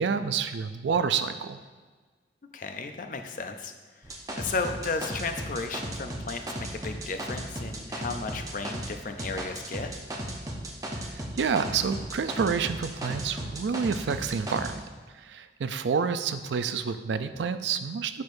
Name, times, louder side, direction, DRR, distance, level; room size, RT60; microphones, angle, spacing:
voice 1, 0.0-1.6 10.9-14.7 15.1-18.2, right 6 dB, 80° right, 11 dB, 0.4 m, -28 dB
voice 2, 2.5-3.7 4.3-9.9, left 4 dB, 50° left, 6 dB, 0.5 m, -34 dB
sound 1, 4.0-8.9 9.2-14.7, right 1 dB, 20° right, 0.7 m, -35 dB
8.4 x 6.1 x 2.6 m, 1.4 s
head